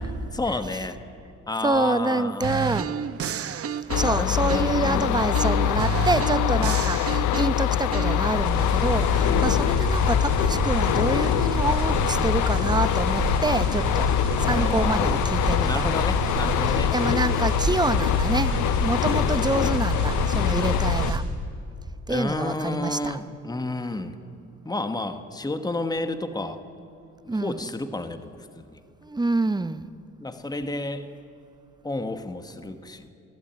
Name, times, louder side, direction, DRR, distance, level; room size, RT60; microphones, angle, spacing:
voice 1, 0.3-1.0 1.5-2.5 4.0-5.3 9.2-9.6 14.5-15.2 15.6-16.9 22.1-24.2 24.6-26.6 27.2-28.3 28.6-28.8 30.2-31.1 31.8-33.1, left 2 dB, 15° left, 9 dB, 1.3 m, -31 dB
voice 2, 1.6-2.9 3.9-14.1 14.4-15.9 16.6-21.2 22.1-23.2 27.3-27.7 29.0-29.9, right 2 dB, 15° right, 13 dB, 0.8 m, -27 dB
sound 1, 2.4-4.9 5.3-8.2, right 8 dB, 50° right, 0.9 m, -30 dB
sound 2, 3.9-21.1, left 12 dB, 80° left, 0.5 m, -24 dB
sound 3, 8.3-21.2, right 3 dB, 70° right, 3.8 m, -29 dB
21.5 x 13.5 x 9.0 m, 2.7 s
cardioid pair, 90°, 30 cm